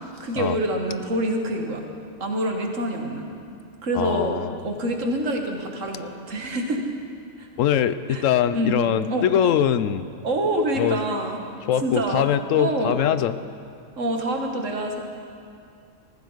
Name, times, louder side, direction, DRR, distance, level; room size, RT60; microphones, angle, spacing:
voice 1, 0.0-1.9 2.2-3.3 3.8-6.8 7.4-7.5 8.1-8.2 8.5-8.8 9.1-9.3 10.2-11.4 11.8-12.3 12.6-13.0 14.0-15.0, right 1 dB, 80° right, 2 dB, 1.8 m, -26 dB
voice 2, 3.9-4.6 7.6-10.0 10.8-11.0 11.6-13.4, left 10 dB, 90° left, 13 dB, 1.0 m, -22 dB
18.5 x 15.0 x 4.0 m, 2.4 s
omnidirectional pair, 1.3 m